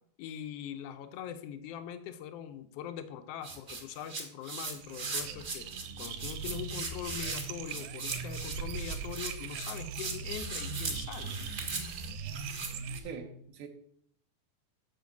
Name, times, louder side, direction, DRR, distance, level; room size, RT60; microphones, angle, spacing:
voice 1, 0.2-5.7 6.0-11.4, left 9 dB, 85° left, 9 dB, 1.4 m, -42 dB
sound 1, 3.4-13.0, right 4 dB, 40° right, 1.1 m, -39 dB
sound 2, 4.6-13.0, right 5 dB, 90° right, 2.2 m, -40 dB
voice 2, 13.0-13.7, right 6 dB, 75° right, 2 dB, 1.2 m, -42 dB
6.5 x 5.2 x 7.1 m, 0.67 s
omnidirectional pair, 3.5 m